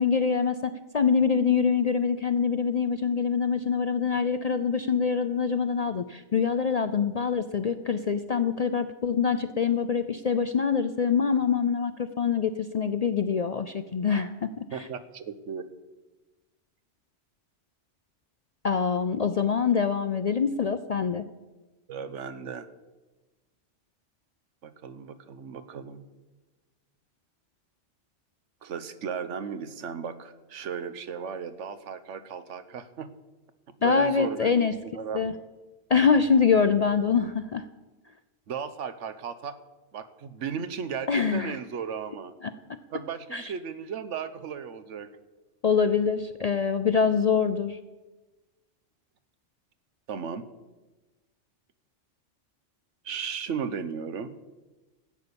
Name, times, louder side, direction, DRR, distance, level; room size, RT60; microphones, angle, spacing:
voice 1, 0.0-14.9 18.6-21.2 33.8-34.7 35.1-35.3 35.9-37.6 41.1-41.6 42.4-42.5 43.3-43.5 45.6-47.8, left 6 dB, 55° left, 10 dB, 0.4 m, -25 dB
voice 2, 14.7-15.7 21.9-22.7 24.6-26.0 28.6-33.1 33.8-35.2 38.5-39.6 39.9-42.3 42.9-45.1 50.1-50.4 53.0-54.3, right 6 dB, 85° right, 12 dB, 1.2 m, -35 dB
13.0 x 8.4 x 6.9 m, 1.2 s
omnidirectional pair, 1.2 m